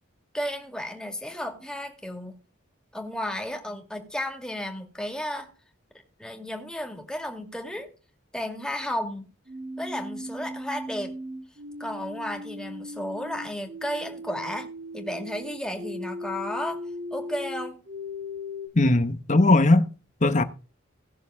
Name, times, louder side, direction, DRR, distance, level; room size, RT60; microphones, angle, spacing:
voice 1, 0.3-2.4 2.9-5.5 6.2-7.9 8.3-9.3 9.8-11.1 11.8-16.8 17.1-17.8, left 1 dB, 5° left, 2.2 m, -33 dB
sound 1, 9.4-18.7, left 1 dB, 45° right, 2.5 m, -38 dB
voice 2, 18.7-19.9 20.2-20.4, left 2 dB, 35° left, 1.0 m, -19 dB
18.0 x 6.7 x 3.6 m
head